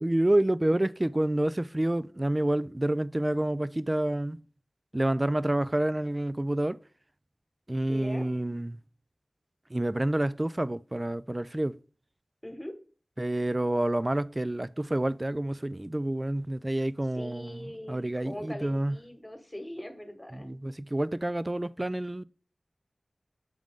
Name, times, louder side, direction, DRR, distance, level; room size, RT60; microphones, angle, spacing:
voice 1, 0.0-4.4 4.9-6.8 7.7-8.8 9.7-11.8 13.2-19.0 20.3-22.2, right 1 dB, 30° right, 0.3 m, -28 dB
voice 2, 7.9-8.2 12.4-12.8 17.1-20.6, equal, 20° left, 1.3 m, -41 dB
7.5 x 3.7 x 3.6 m
wide cardioid pair, 45°, 0 cm